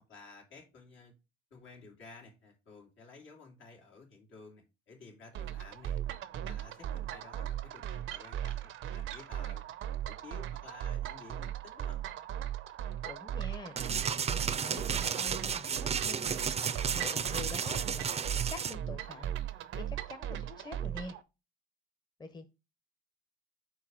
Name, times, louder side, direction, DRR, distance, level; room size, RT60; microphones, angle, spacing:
voice 1, 0.1-1.1 1.5-6.0 6.4-9.6 10.0-12.0, left 4 dB, 75° left, 2.5 m, -53 dB
sound 1, 5.3-21.2, right 11 dB, 80° right, 0.6 m, -38 dB
voice 2, 13.0-13.8 14.3-16.4 16.9-21.2 22.2-22.4, left 3 dB, 20° left, 0.8 m, -46 dB
sound 2, 13.8-18.7, right 7 dB, 30° right, 0.4 m, -33 dB
4.7 x 4.2 x 5.9 m
cardioid pair, 90°, 20 cm